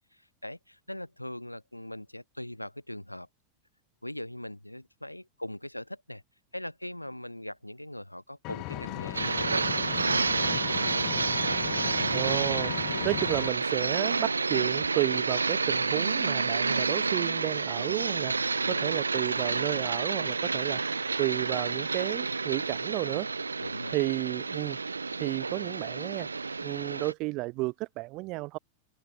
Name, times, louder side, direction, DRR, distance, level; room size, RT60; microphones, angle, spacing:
voice 1, 0.1-3.3 4.0-6.2 6.5-9.5 9.8-11.0 11.6-12.2 12.9-13.1 18.6-19.0 23.6-24.0, left 1 dB, 85° left, 4.9 m, -41 dB
Engine, 8.4-13.5, left 24 dB, 40° left, 6.2 m, -37 dB
sound 1, 9.1-27.1, right 4 dB, 80° right, 0.8 m, -29 dB
voice 2, 12.1-23.3 23.9-24.8 25.2-26.3 26.6-28.6, right 22 dB, 40° right, 7.0 m, -32 dB
figure-of-eight pair, 90°, 0 cm